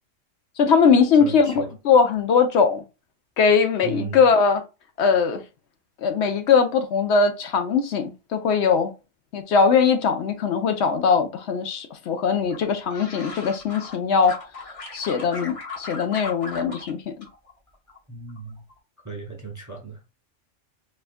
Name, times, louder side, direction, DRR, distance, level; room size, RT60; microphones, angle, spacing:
voice 1, 0.6-2.8 3.4-4.6 5.0-5.4 6.0-8.9 9.3-14.3 14.9-17.1, left 5 dB, 70° left, 0.9 m, -20 dB
voice 2, 1.2-1.7 3.8-4.2 18.1-18.6 19.0-20.0, right 3 dB, 20° right, 0.6 m, -35 dB
sound 1, 12.5-14.0 14.2-16.9 17.2-18.0 18.3-18.7, left 3 dB, 30° left, 0.9 m, -37 dB
4.2 x 2.3 x 2.5 m
omnidirectional pair, 1.2 m